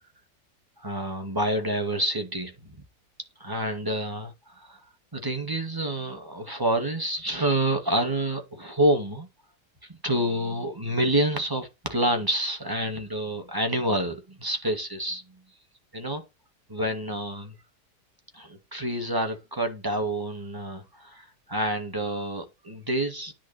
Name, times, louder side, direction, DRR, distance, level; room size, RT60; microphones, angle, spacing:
voice 1, 0.8-2.8 3.4-4.8 5.1-9.3 9.9-15.2 15.9-16.2 16.7-17.5 18.3-23.3, right 1 dB, 15° right, 2.1 m, -28 dB
10.0 x 3.6 x 5.7 m
omnidirectional pair, 1.7 m